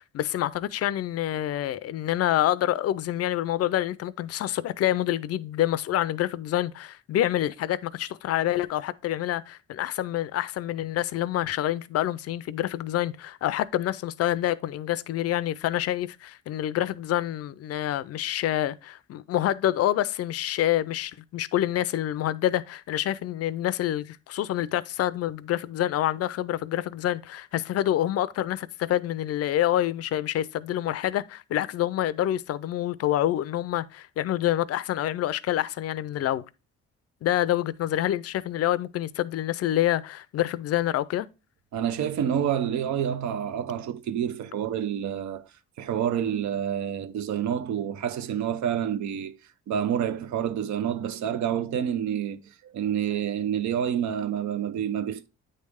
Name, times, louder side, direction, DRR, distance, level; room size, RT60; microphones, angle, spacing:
voice 1, 0.0-36.4 37.2-41.3, left 13 dB, 55° left, 0.4 m, -27 dB
voice 2, 41.7-45.5 45.8-49.4 49.7-55.3, right 9 dB, 70° right, 0.6 m, -28 dB
8.6 x 3.2 x 3.4 m
cardioid pair, 90°, 30 cm